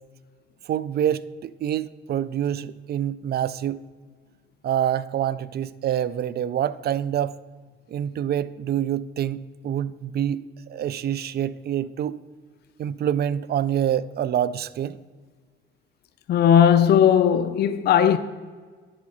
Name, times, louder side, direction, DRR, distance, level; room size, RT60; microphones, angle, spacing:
voice 1, 0.6-3.8 4.6-7.4 7.9-12.3 12.8-15.0, right 10 dB, 55° right, 0.4 m, -26 dB
voice 2, 16.3-18.2, left 9 dB, 55° left, 0.4 m, -17 dB
10.0 x 5.0 x 5.4 m
cardioid pair, 90°, 20 cm